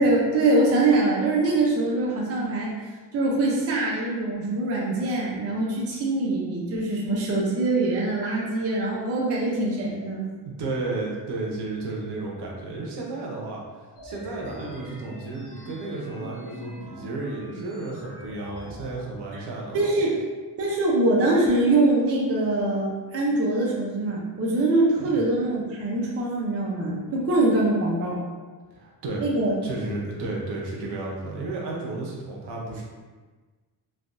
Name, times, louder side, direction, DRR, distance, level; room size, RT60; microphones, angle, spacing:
voice 1, 0.0-2.7 3.1-10.3 19.3-19.4 19.7-20.1 20.6-28.2 29.2-29.5, right 2 dB, 35° right, -4 dB, 0.5 m, -23 dB
voice 2, 10.4-13.6 14.0-19.8 25.0-25.2 28.7-29.2 29.6-32.8, right 2 dB, 75° right, -2 dB, 0.7 m, -33 dB
sound 1, 14.0-19.0, equal, 75° left, 0.9 m, -42 dB
3.3 x 2.2 x 2.5 m, 1.3 s
wide cardioid pair, 170°, 41 cm